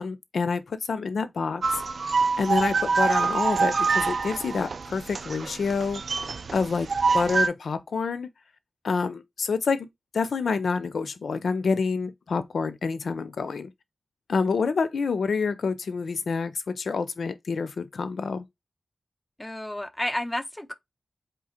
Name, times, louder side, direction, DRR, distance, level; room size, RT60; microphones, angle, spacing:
voice 1, 0.0-1.8 2.4-6.0 6.5-6.9 7.1-8.3 8.8-9.9 10.1-13.7 14.3-18.5, left 5 dB, 90° left, 0.5 m, -27 dB
sound 1, 1.6-7.5, right 4 dB, 65° right, 0.4 m, -25 dB
voice 2, 19.4-20.7, left 1 dB, 10° left, 0.4 m, -31 dB
3.8 x 3.2 x 4.2 m
wide cardioid pair, 110°, 0 cm